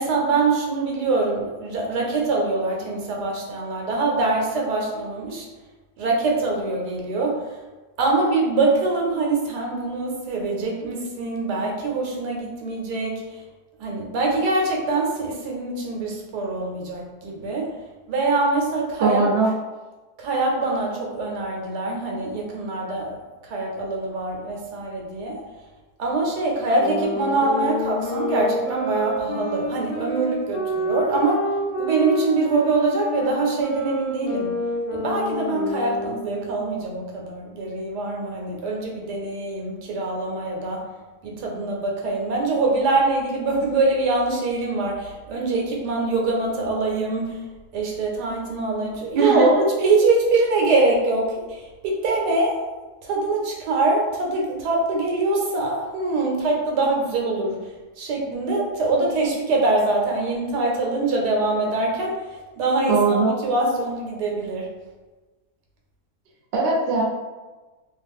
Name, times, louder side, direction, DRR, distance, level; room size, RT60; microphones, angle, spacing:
voice 1, 0.0-5.5 6.0-7.4 8.0-13.4 13.8-17.7 18.1-19.2 20.2-23.2 23.4-25.4 26.0-31.4 31.8-34.5 34.9-40.8 41.2-47.4 47.7-49.5 49.8-52.6 53.0-57.7 58.0-62.2 62.6-64.7, right 3 dB, 85° right, -1 dB, 1.3 m, -24 dB
voice 2, 19.0-19.5 49.2-49.5 62.9-63.4 66.5-67.0, right 4 dB, 55° right, -2 dB, 0.7 m, -20 dB
sound 1, 26.8-36.4, equal, 65° left, 0.8 m, -28 dB
2.9 x 2.5 x 3.4 m, 1.2 s
omnidirectional pair, 1.7 m